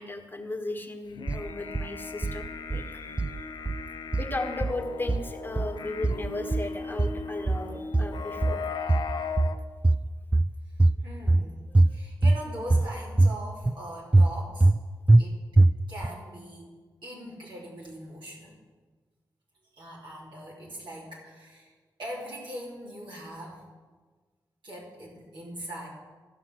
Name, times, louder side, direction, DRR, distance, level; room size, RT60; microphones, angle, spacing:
voice 1, 0.0-2.4 2.7-3.2 4.2-8.6, left 2 dB, 25° left, 3 dB, 1.4 m, -35 dB
sound 1, 1.1-9.6, left 5 dB, 75° left, 0.6 m, -38 dB
sound 2, 1.3-1.9 2.2-2.9 3.2-3.9 4.1-4.8 5.1-5.8 6.0-6.7 7.0-7.7 7.9-8.6 8.9-9.6 9.8-10.5 10.8-11.4 11.7-12.4 12.7-13.3 13.6-13.8 14.1-14.8 15.1-15.2 15.6-16.1, right 2 dB, 15° right, 0.3 m, -22 dB
voice 2, 11.0-11.6 11.9-14.7 15.2-15.4 15.9-16.7 17.0-18.5 19.7-21.7 22.0-23.6 24.6-25.9, equal, 85° right, -5 dB, 3.0 m, -41 dB
14.5 x 5.8 x 6.1 m, 1.4 s
cardioid pair, 55°, 8 cm